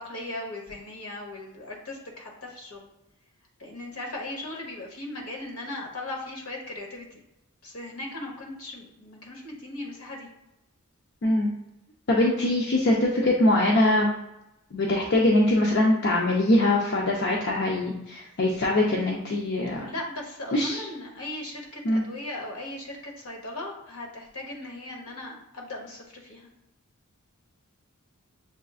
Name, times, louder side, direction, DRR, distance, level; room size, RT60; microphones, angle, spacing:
voice 1, 0.0-2.9 3.6-7.2 7.6-10.3 19.8-26.5, left 1 dB, 70° left, 0 dB, 1.1 m, -38 dB
voice 2, 11.2-11.5 12.1-14.1 14.7-19.9 20.5-20.9 21.8-22.0, left 1 dB, 50° left, -2 dB, 0.5 m, -22 dB
6.8 x 2.5 x 2.4 m, 0.90 s
head